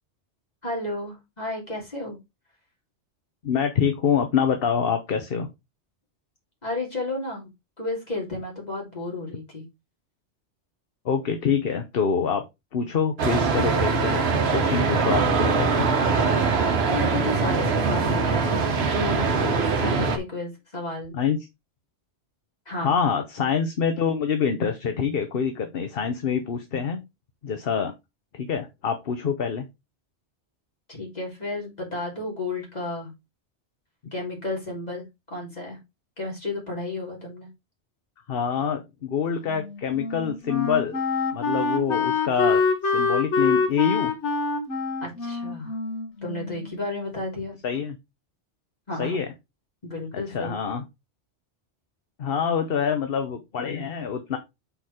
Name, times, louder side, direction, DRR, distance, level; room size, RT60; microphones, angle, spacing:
voice 1, 0.6-2.2 6.6-7.5 7.8-9.7 16.9-19.4 19.8-21.2 22.6-22.9 30.9-33.1 34.1-35.8 36.2-37.5 45.0-45.7 46.2-47.6 48.9-49.2 49.8-50.6, left 2 dB, 35° left, -2 dB, 3.3 m, -32 dB
voice 2, 3.4-5.5 11.0-12.4 12.7-14.2 14.5-15.9 21.1-21.4 22.8-27.0 27.4-27.9 28.3-29.7 38.3-41.0 41.3-44.1 47.6-48.0 49.0-49.3 50.1-50.8 52.2-54.4, left 7 dB, 55° left, 7 dB, 1.1 m, -26 dB
sound 1, 13.2-20.2, right 4 dB, 60° right, 1.2 m, -22 dB
Wind instrument woodwind instrument, 39.5-46.8, left 4 dB, 75° left, 1.4 m, -26 dB
5.6 x 4.4 x 4.8 m, 0.22 s
omnidirectional pair, 1.2 m